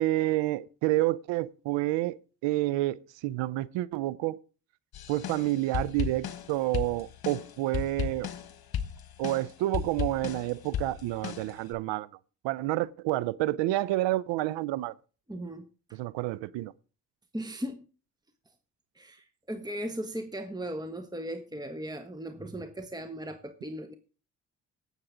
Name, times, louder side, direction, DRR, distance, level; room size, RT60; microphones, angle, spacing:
voice 1, 0.0-2.2 2.4-4.4 5.1-8.3 9.2-12.1 12.4-14.9 15.9-16.7, right 16 dB, 80° right, 0.6 m, -29 dB
sound 1, 4.9-11.7, left 9 dB, 55° left, 1.3 m, -36 dB
voice 2, 15.3-16.0 17.3-17.9 18.9-23.9, right 1 dB, 10° right, 1.4 m, -37 dB
17.5 x 7.3 x 3.8 m
hypercardioid pair, 45°, 43 cm